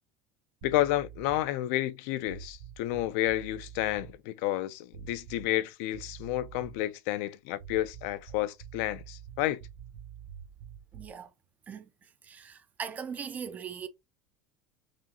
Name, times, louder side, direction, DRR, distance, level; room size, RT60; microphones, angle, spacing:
voice 1, 0.6-9.6, left 15 dB, 60° left, 0.4 m, -31 dB
sound 1, 0.6-1.6 2.2-4.2 4.9-5.7 5.9-6.9 7.6-11.2, right 9 dB, 60° right, 0.7 m, -47 dB
voice 2, 10.9-11.3 11.7-11.9 12.2-13.9, right 7 dB, 20° right, 0.4 m, -39 dB
4.9 x 2.7 x 2.8 m
cardioid pair, 170°, 8 cm